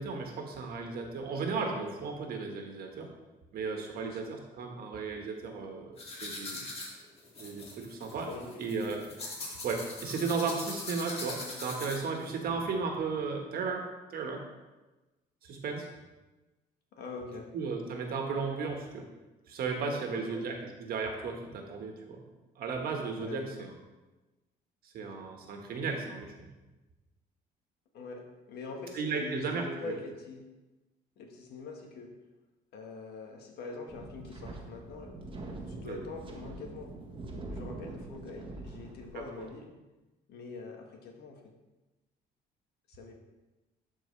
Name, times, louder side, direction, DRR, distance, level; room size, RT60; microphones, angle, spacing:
voice 1, 0.0-3.1 3.5-6.6 7.4-8.3 8.6-9.0 9.5-14.4 15.4-15.9 17.5-19.0 19.5-20.5 20.8-22.2 22.6-23.4 24.9-26.3 28.9-29.9 35.8-36.0 39.4-39.5, right 4 dB, 65° right, 2 dB, 1.5 m, -35 dB
voice 2, 3.9-4.3 8.3-8.7 16.9-17.5 20.1-20.5 23.2-23.7 27.9-30.4 31.2-32.1 32.7-35.1 35.7-36.9 37.5-39.7 40.3-41.5 42.9-43.1, left 3 dB, 75° left, 2 dB, 1.5 m, -44 dB
sound 1, 6.0-12.3, left 2 dB, 35° left, 2.0 m, -41 dB
Wind, 33.9-39.5, right 2 dB, 30° right, 1.1 m, -43 dB
11.5 x 4.6 x 3.3 m, 1.1 s
cardioid pair, 110°, 17 cm